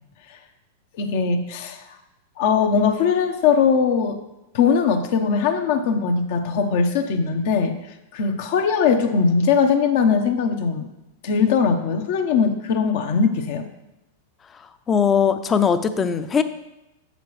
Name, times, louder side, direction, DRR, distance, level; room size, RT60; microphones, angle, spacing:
voice 1, 1.0-1.8 2.4-4.2 4.5-7.7 8.1-10.9 11.2-13.7, left 6 dB, 60° left, 7 dB, 0.9 m, -20 dB
voice 2, 14.9-16.4, left 7 dB, 25° left, 10 dB, 0.5 m, -19 dB
7.5 x 6.6 x 3.2 m, 0.93 s
hypercardioid pair, 105°, 0 cm